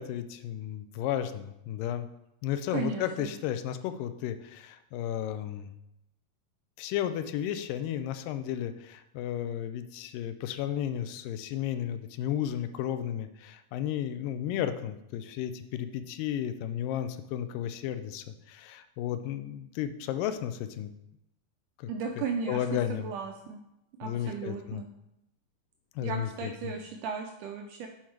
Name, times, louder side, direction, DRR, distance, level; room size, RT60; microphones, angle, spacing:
voice 1, 0.0-2.1 2.4-5.7 6.8-20.9 21.8-21.9 22.2-23.1 24.0-24.8 26.0-26.7, left 10 dB, 85° left, 10 dB, 2.2 m, -33 dB
voice 2, 2.7-3.3 21.9-22.6 22.9-23.6 24.0-24.9 26.0-27.9, right 5 dB, 80° right, 3 dB, 1.9 m, -35 dB
7.2 x 4.6 x 4.5 m, 0.87 s
omnidirectional pair, 3.9 m